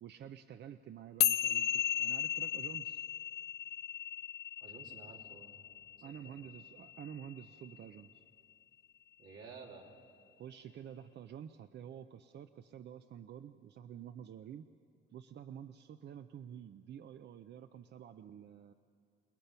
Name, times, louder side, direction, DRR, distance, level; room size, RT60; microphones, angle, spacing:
voice 1, 0.0-3.1 6.0-8.2 10.4-14.7 15.1-18.7, right 9 dB, 60° right, 9 dB, 0.6 m, -49 dB
sound 1, 1.2-7.8, left 10 dB, 55° left, 0.5 m, -35 dB
voice 2, 4.6-5.6 6.0-6.5 9.2-9.9, right 5 dB, 90° right, -1 dB, 3.2 m, -53 dB
29.0 x 20.0 x 5.8 m, 2.4 s
cardioid pair, 90°, 20 cm